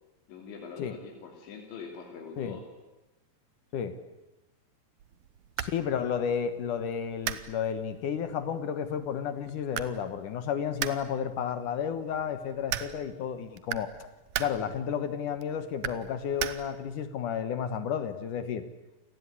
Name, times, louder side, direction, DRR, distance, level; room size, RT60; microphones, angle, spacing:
voice 1, 0.3-2.6, left 5 dB, 90° left, 1 dB, 5.4 m, -44 dB
sound 1, 5.0-17.0, right 12 dB, 75° right, 1.9 m, -40 dB
voice 2, 5.6-13.9 14.4-18.6, left 8 dB, 65° left, 11 dB, 2.2 m, -32 dB
28.5 x 19.0 x 9.8 m, 1.0 s
omnidirectional pair, 5.1 m